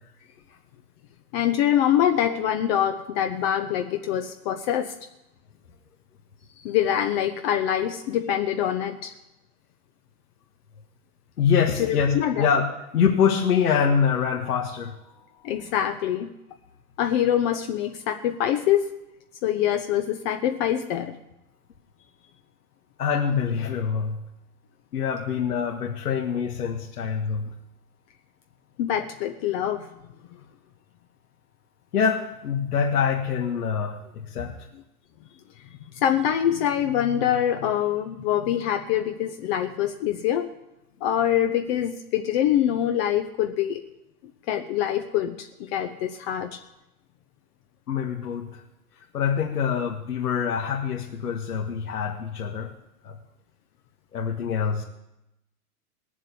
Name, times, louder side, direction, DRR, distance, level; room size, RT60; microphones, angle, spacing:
voice 1, 1.3-4.9 6.6-9.1 11.8-12.5 15.4-16.3 17.0-18.9 19.4-21.2 28.8-29.9 35.9-40.5 41.0-43.8 44.5-46.6, left 10 dB, 40° left, 6 dB, 1.0 m, -24 dB
voice 2, 11.4-15.0 23.0-24.3 24.9-27.5 31.9-34.5 47.9-48.6 49.1-52.7 53.0-53.2 54.1-54.8, left 7 dB, 75° left, 0 dB, 2.0 m, -25 dB
19.0 x 7.5 x 8.5 m, 0.92 s
hypercardioid pair, 125°, 46 cm